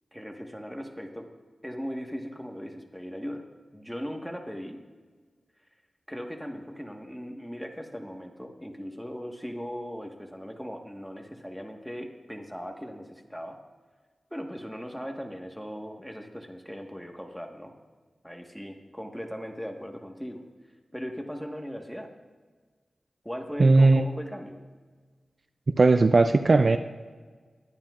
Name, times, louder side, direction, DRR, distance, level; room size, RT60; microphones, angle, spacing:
voice 1, 0.1-1.3 1.6-3.5 3.7-4.8 6.1-13.6 14.3-17.7 18.2-20.4 20.9-22.1 23.2-24.6, equal, ahead, 2 dB, 1.5 m, -38 dB
voice 2, 23.6-24.0 25.8-26.8, right 3 dB, 55° right, 9 dB, 0.4 m, -18 dB
21.0 x 10.5 x 2.5 m, 1.5 s
cardioid pair, 60°, 0 cm